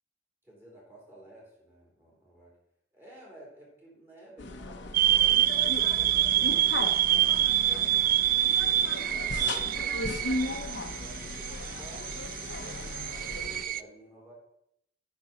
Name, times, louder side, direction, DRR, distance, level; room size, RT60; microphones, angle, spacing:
voice 1, 0.4-2.5 2.9-8.1 8.7-13.1 13.5-14.3, right 1 dB, 10° right, -5 dB, 3.7 m, -52 dB
sound 1, 4.4-13.6, left 2 dB, 70° left, 0.8 m, -37 dB
sound 2, 4.9-13.8, right 12 dB, 50° right, 0.3 m, -26 dB
9.7 x 6.1 x 4.3 m, 0.76 s
head